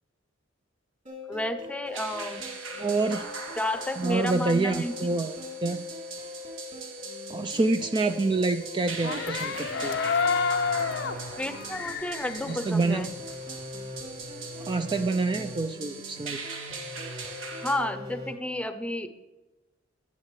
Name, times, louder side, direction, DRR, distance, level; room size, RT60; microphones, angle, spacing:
sound 1, 1.1-18.3, left 2 dB, 40° right, 3.2 m, -42 dB
voice 1, 1.3-2.4 3.6-5.1 11.4-13.1 17.6-19.1, left 1 dB, 5° left, 9 dB, 0.7 m, -31 dB
sound 2, 1.9-17.7, right 5 dB, 85° right, 1.8 m, -41 dB
voice 2, 2.8-3.3 4.0-5.8 7.3-10.0 12.5-13.1 14.7-16.4, right 3 dB, 25° right, 8 dB, 0.3 m, -27 dB
sound 3, 8.9-13.6 13.9-15.0, left 5 dB, 65° left, 0.6 m, -30 dB
14.0 x 9.5 x 3.2 m, 1.1 s
head